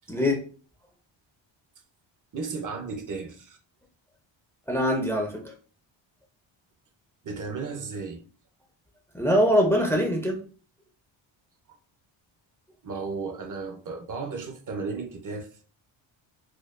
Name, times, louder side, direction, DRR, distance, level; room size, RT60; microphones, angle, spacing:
voice 1, 0.1-0.4 4.7-5.5 9.1-10.4, equal, 5° left, 0.5 m, -23 dB
voice 2, 2.3-3.6 7.2-8.2 12.8-15.5, right 4 dB, 40° right, 0.6 m, -34 dB
4.3 x 2.2 x 2.4 m
cardioid pair, 120°, 48 cm